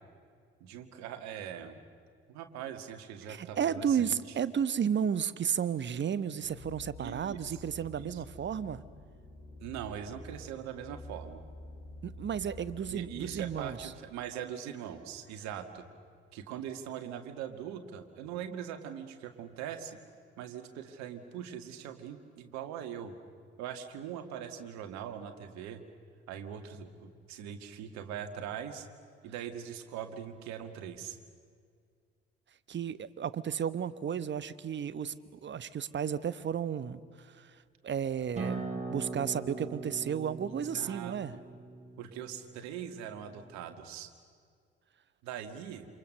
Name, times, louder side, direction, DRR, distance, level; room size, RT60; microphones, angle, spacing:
voice 1, 0.6-1.8 2.3-4.2 7.0-7.6 7.9-8.2 9.6-11.4 12.8-15.8 16.3-20.0 20.4-23.1 23.6-25.8 26.3-28.9 29.2-31.2 40.5-41.2 42.0-44.1 45.2-45.9, right 9 dB, 65° right, 6 dB, 2.1 m, -41 dB
voice 2, 3.3-8.8 12.0-13.9 32.7-37.5 37.8-41.3, right 8 dB, 40° right, 15 dB, 1.1 m, -33 dB
sound 1, 6.4-13.7, left 1 dB, 80° left, 5.5 m, -49 dB
Acoustic guitar, 38.4-43.6, right 3 dB, 25° right, 6.3 m, -41 dB
28.0 x 26.5 x 6.7 m, 2.1 s
figure-of-eight pair, 50°, 30 cm